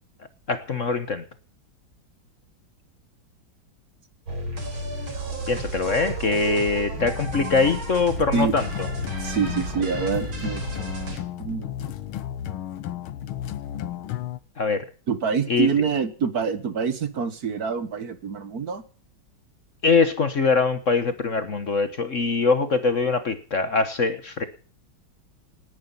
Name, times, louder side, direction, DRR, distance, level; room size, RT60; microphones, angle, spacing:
voice 1, 0.5-1.2 5.5-8.9 14.6-14.9 15.5-15.7 19.8-24.5, left 4 dB, 45° left, 11 dB, 1.4 m, -23 dB
sound 1, 4.3-11.2, right 2 dB, 80° right, 4.9 m, -33 dB
sound 2, 6.9-14.4, left 11 dB, 90° left, 1.8 m, -34 dB
voice 2, 9.2-10.8 11.4-11.8 15.1-18.8, right 6 dB, 50° right, 13 dB, 1.6 m, -26 dB
19.0 x 10.5 x 5.5 m, 0.41 s
omnidirectional pair, 2.2 m